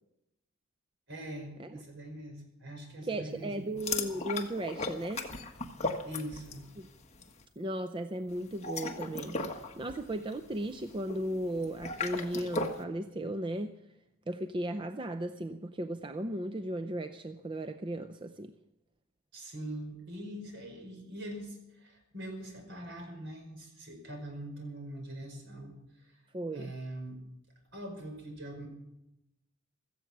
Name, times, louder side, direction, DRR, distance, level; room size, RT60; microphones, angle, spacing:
voice 1, 1.1-3.7 6.0-6.7 19.3-26.2 26.5-27.2 27.7-28.7, right 1 dB, 60° right, 3 dB, 5.1 m, -43 dB
voice 2, 3.0-5.3 6.8-6.9 7.6-13.8 14.3-18.5 26.3-26.7, right 1 dB, 25° right, 9 dB, 0.5 m, -36 dB
sound 1, 3.8-6.7 7.0-7.3 8.5-12.8, left 3 dB, 30° left, 1.5 m, -37 dB
16.5 x 14.0 x 6.0 m, 0.87 s
head